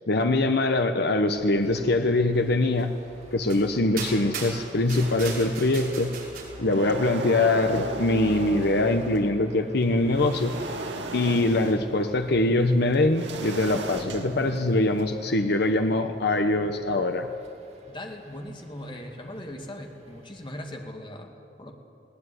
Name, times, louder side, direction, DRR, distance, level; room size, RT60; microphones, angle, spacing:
voice 1, 0.1-3.0 3.3-6.1 6.6-10.5 11.1-17.3, left 2 dB, 65° left, 6 dB, 1.0 m, -23 dB
sound 1, 1.4-20.7, right 1 dB, 40° right, 2.4 m, -49 dB
sound 2, 2.8-2.9 3.5-3.6 4.0-6.4, right 5 dB, 55° right, 5.7 m, -37 dB
sound 3, 4.9-5.9 6.3-9.3 9.8-15.3, right 2 dB, 85° right, 2.4 m, -37 dB
voice 2, 17.9-21.7, left 1 dB, 30° left, 3 dB, 2.3 m, -39 dB
20.0 x 18.0 x 9.8 m, 2.6 s
head